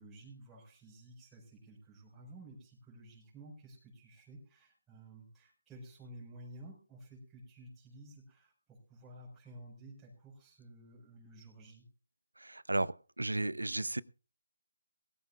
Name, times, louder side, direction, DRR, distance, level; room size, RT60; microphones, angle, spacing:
voice 1, 0.0-11.9, right 1 dB, 10° right, 4.8 m, -53 dB
voice 2, 12.4-14.0, right 2 dB, 80° right, 0.7 m, -34 dB
21.0 x 14.0 x 2.3 m
figure-of-eight pair, 155°, 0 cm